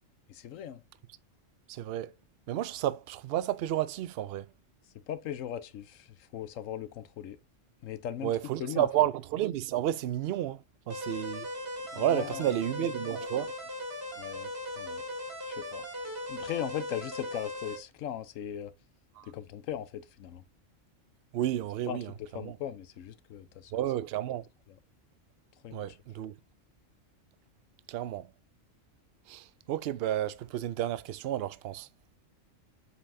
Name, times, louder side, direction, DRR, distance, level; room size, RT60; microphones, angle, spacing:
voice 1, 0.3-0.8 4.9-7.4 7.8-8.3 8.6-9.1 11.9-12.9 14.2-15.0 15.5-15.9 16.3-18.7 19.2-20.4 21.9-23.8 24.7-24.8 25.6-26.0, left 10 dB, 80° left, 1.1 m, -39 dB
voice 2, 1.7-2.1 2.5-4.5 8.2-11.5 12.0-13.5 19.2-19.3 21.3-22.1 22.4-22.5 23.7-24.5 25.7-26.3 27.9-28.3 29.3-31.9, right 12 dB, 60° right, 0.7 m, -31 dB
sound 1, 10.9-17.8, left 1 dB, 15° right, 3.3 m, -38 dB
8.1 x 5.5 x 2.7 m
omnidirectional pair, 1.3 m